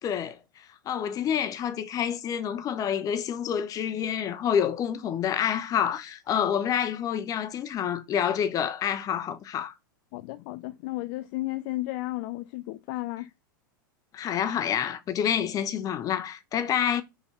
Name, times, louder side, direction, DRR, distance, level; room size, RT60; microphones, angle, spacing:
voice 1, 0.0-9.8 14.1-17.0, left 9 dB, 30° left, 0.9 m, -28 dB
voice 2, 10.1-13.3, left 18 dB, 50° left, 0.4 m, -33 dB
5.5 x 4.0 x 5.6 m
hypercardioid pair, 95°, 11 cm